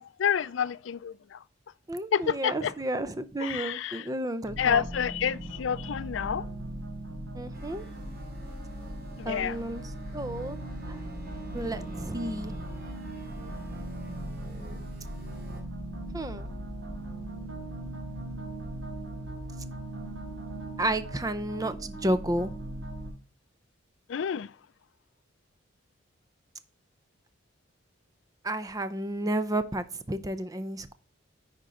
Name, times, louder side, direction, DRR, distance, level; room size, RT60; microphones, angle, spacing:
voice 1, 0.0-1.4 2.1-2.7 3.4-4.0 4.6-6.4 9.2-9.5 24.1-24.5, left 8 dB, 70° left, 0.4 m, -29 dB
voice 2, 1.9-4.9 7.3-7.8 9.3-10.6 10.8-11.0 11.5-12.6 16.1-16.5 20.8-22.5 28.4-30.9, right 1 dB, 20° right, 0.5 m, -32 dB
sound 1, 4.5-23.1, right 1 dB, 80° right, 3.1 m, -39 dB
sound 2, 7.5-15.6, equal, 50° right, 2.6 m, -49 dB
10.0 x 4.5 x 3.8 m
head